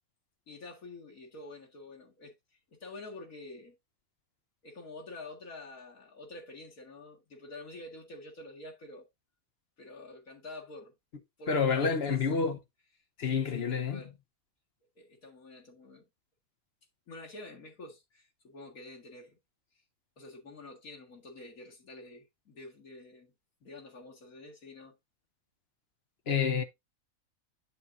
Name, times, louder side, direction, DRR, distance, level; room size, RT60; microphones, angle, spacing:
voice 1, 0.5-2.3 2.7-3.8 4.6-9.1 9.8-10.9 11.4-12.2 13.3-14.1 15.0-16.0 17.1-19.4 20.2-23.3 23.6-24.9, left 2 dB, 80° left, 2.5 m, -48 dB
voice 2, 11.5-12.6 13.2-14.0 26.3-26.6, left 6 dB, 50° left, 1.1 m, -28 dB
8.4 x 7.3 x 2.6 m
omnidirectional pair, 1.5 m